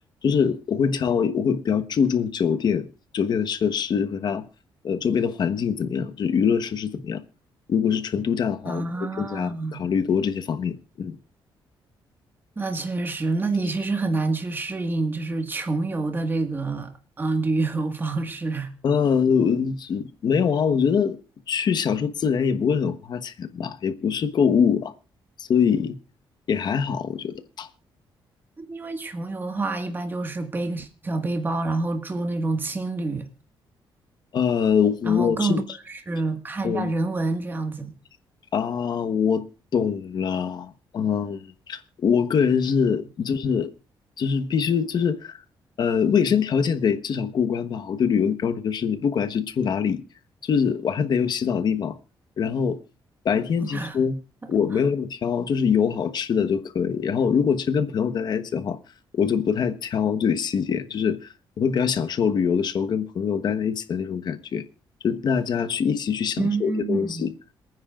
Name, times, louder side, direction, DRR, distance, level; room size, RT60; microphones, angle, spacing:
voice 1, 0.2-2.9 3.1-4.4 4.8-7.2 7.7-11.2 18.8-21.2 21.5-24.9 25.4-26.0 26.5-27.7 34.3-35.6 36.6-36.9 38.5-39.4 39.7-43.7 44.2-45.4 45.8-50.0 50.4-52.0 52.4-52.8 53.2-54.2 54.5-58.8 59.1-61.3 61.6-64.6 65.0-67.3, left 7 dB, 55° left, 1.2 m, -23 dB
voice 2, 8.7-9.8 12.6-18.7 28.6-33.3 35.0-35.6 35.9-37.9 53.6-54.0 54.4-54.5 66.4-67.3, right 3 dB, 25° right, 1.7 m, -27 dB
27.0 x 9.6 x 2.5 m
cardioid pair, 120°, 9 cm